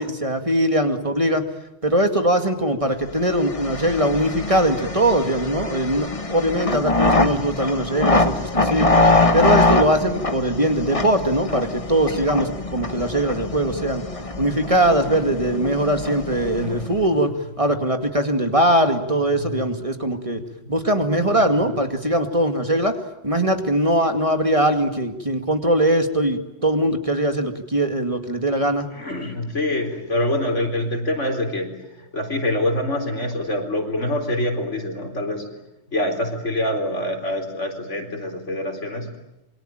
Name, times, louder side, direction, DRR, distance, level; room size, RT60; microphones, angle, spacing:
voice 1, 0.0-1.4 1.8-8.9 9.3-14.0 14.4-20.4 20.7-28.9, right 1 dB, 25° right, 6 dB, 2.2 m, -21 dB
sound 1, 3.2-17.1, left 2 dB, 25° left, 1.6 m, -23 dB
voice 2, 20.3-20.8 21.2-21.4 22.1-22.2 28.9-35.5 35.9-39.1, left 1 dB, 70° left, 4 dB, 4.5 m, -26 dB
27.5 x 23.0 x 9.0 m, 0.90 s
omnidirectional pair, 1.3 m